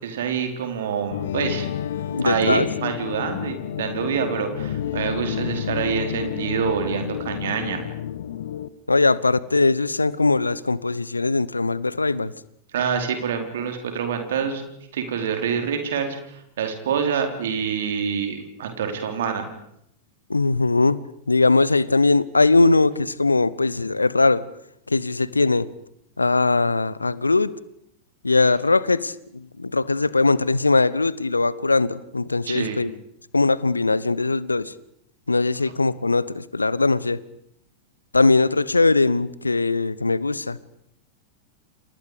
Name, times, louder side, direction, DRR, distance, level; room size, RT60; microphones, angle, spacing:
voice 1, 0.0-1.7 2.2-7.9 12.7-14.7 14.9-19.5 32.5-32.8, right 7 dB, 60° right, 5 dB, 4.4 m, -26 dB
sound 1, 1.1-8.7, left 10 dB, 60° left, 1.3 m, -30 dB
voice 2, 2.1-2.7 8.9-12.3 20.3-21.0 21.3-24.4 24.9-25.7 26.2-27.6 28.2-32.9 33.3-34.7 35.3-37.2 38.1-40.6, left 3 dB, 80° left, 19 dB, 1.1 m, -20 dB
30.0 x 28.5 x 5.2 m, 0.74 s
figure-of-eight pair, 90°, 0 cm